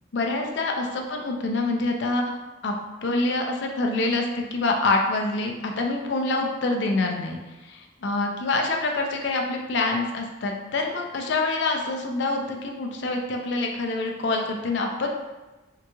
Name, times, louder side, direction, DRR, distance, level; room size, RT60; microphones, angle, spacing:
voice 1, 0.1-2.7 3.0-7.4 7.6-15.1, left 2 dB, 65° left, 2 dB, 0.4 m, -26 dB
3.7 x 2.9 x 2.3 m, 1.1 s
head